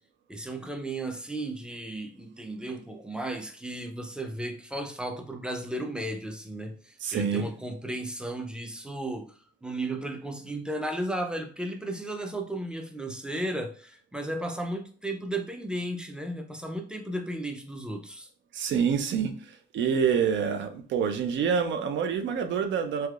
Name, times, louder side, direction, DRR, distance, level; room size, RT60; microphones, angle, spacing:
voice 1, 0.3-18.3, right 1 dB, 5° right, 5 dB, 0.5 m, -34 dB
voice 2, 7.0-7.5 18.5-23.1, right 7 dB, 70° right, 7 dB, 0.5 m, -27 dB
3.3 x 2.7 x 2.4 m, 0.42 s
cardioid pair, 90°, 20 cm